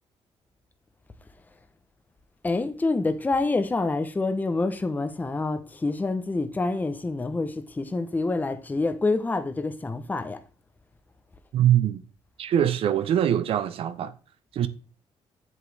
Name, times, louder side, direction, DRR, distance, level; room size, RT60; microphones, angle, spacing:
voice 1, 2.4-10.4, left 3 dB, 15° left, 0.7 m, -27 dB
voice 2, 11.5-12.0 12.4-14.1 14.5-14.7, right 10 dB, 65° right, 0.7 m, -23 dB
7.9 x 7.3 x 3.3 m
cardioid pair, 115°, 10 cm